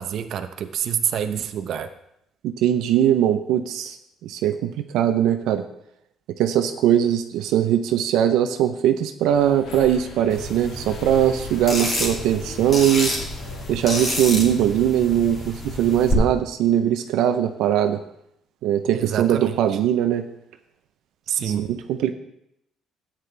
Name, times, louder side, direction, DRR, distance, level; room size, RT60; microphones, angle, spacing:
voice 1, 0.0-1.9 18.9-19.6 21.3-21.7, right 9 dB, 55° right, 7 dB, 0.8 m, -27 dB
voice 2, 2.4-4.0 4.2-5.6 6.4-13.1 13.7-18.0 18.6-20.3 21.4-22.1, right 10 dB, 85° right, 7 dB, 0.7 m, -21 dB
sound 1, 9.3-14.4, left 4 dB, 70° left, 1.6 m, -41 dB
sound 2, 10.3-16.1, left 1 dB, 30° left, 2.9 m, -29 dB
13.5 x 9.0 x 3.4 m, 0.78 s
cardioid pair, 155°, 0 cm